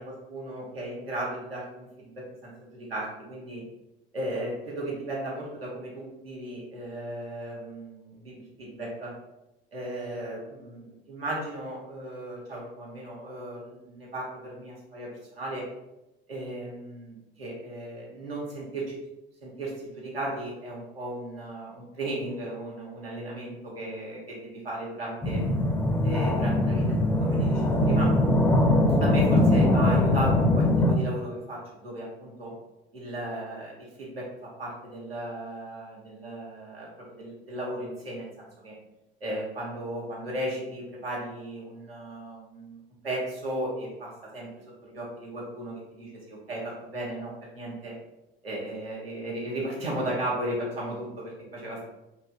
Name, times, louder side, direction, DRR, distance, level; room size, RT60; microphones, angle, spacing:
voice 1, 0.0-3.6 4.1-9.1 9.7-15.6 16.3-19.0 19.4-25.4 26.0-28.1 29.0-32.5 32.9-38.7 39.2-42.8 43.0-44.5 44.8-47.9 48.4-51.8, right 1 dB, 85° right, -4 dB, 1.1 m, -36 dB
sound 1, 25.2-30.9, left 1 dB, 5° left, 0.6 m, -22 dB
5.3 x 2.7 x 2.4 m, 0.93 s
figure-of-eight pair, 65°, 29 cm